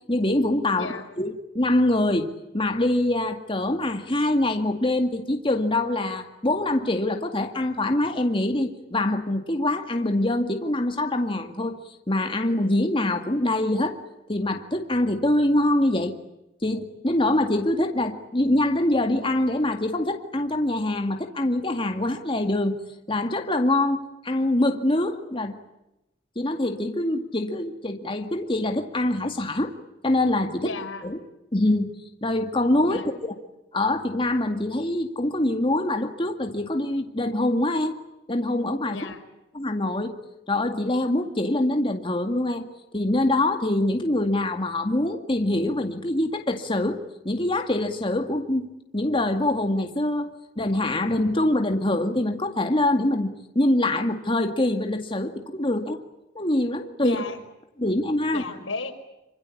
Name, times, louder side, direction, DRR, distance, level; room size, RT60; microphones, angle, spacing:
voice 1, 0.1-11.8 12.1-14.0 14.3-16.1 16.6-22.8 23.1-25.6 26.4-29.7 30.0-30.7 31.0-31.2 31.5-31.9 32.2-33.3 33.7-38.0 38.3-39.1 39.5-40.2 40.5-42.7 42.9-48.7 48.9-56.0 56.4-57.2 57.8-58.4, left 1 dB, 25° left, 5 dB, 2.1 m, -24 dB
voice 2, 30.6-31.1 32.8-33.1 38.9-39.2 57.0-57.4 58.3-58.9, left 3 dB, 90° left, 6 dB, 5.1 m, -34 dB
26.5 x 26.0 x 8.5 m, 0.91 s
head